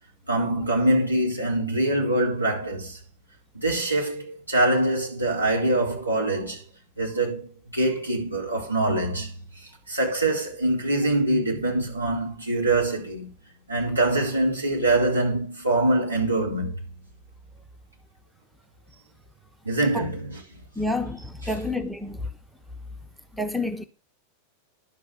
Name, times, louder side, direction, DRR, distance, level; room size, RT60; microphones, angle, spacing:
voice 1, 0.3-3.0 3.5-6.6 7.0-9.3 9.9-13.3 13.7-16.7 19.6-20.4, right 1 dB, 85° right, 4.5 m, -24 dB
voice 2, 20.8-22.3 23.4-23.9, left 2 dB, ahead, 1.1 m, -28 dB
11.5 x 5.7 x 7.0 m
figure-of-eight pair, 90°, 0 cm